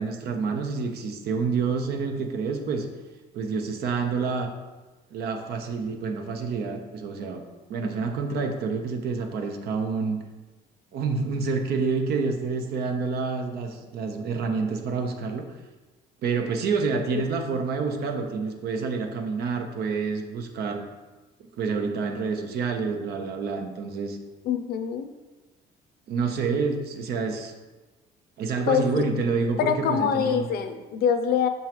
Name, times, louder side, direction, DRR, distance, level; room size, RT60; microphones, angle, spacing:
voice 1, 0.0-2.9 3.3-4.5 5.1-7.4 7.7-10.2 10.9-15.5 16.2-20.9 21.6-24.2 26.1-27.5 28.4-30.5, right 4 dB, 70° right, 5 dB, 0.8 m, -28 dB
voice 2, 24.4-25.1 28.7-29.0 29.6-31.5, left 8 dB, 65° left, 9 dB, 0.6 m, -24 dB
6.0 x 5.5 x 3.0 m, 1.2 s
cardioid pair, 110°, 17 cm